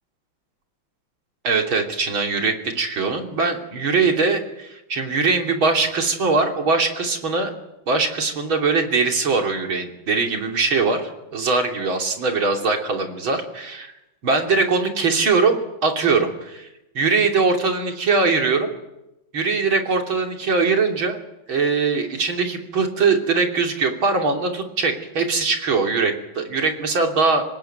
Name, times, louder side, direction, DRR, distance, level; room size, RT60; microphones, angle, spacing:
voice 1, 1.4-7.5 7.9-13.9 14.2-16.7 17.0-18.7 19.3-21.2 21.5-27.4, right 4 dB, 80° right, 3 dB, 3.8 m, -21 dB
25.5 x 19.5 x 9.3 m, 0.93 s
omnidirectional pair, 2.2 m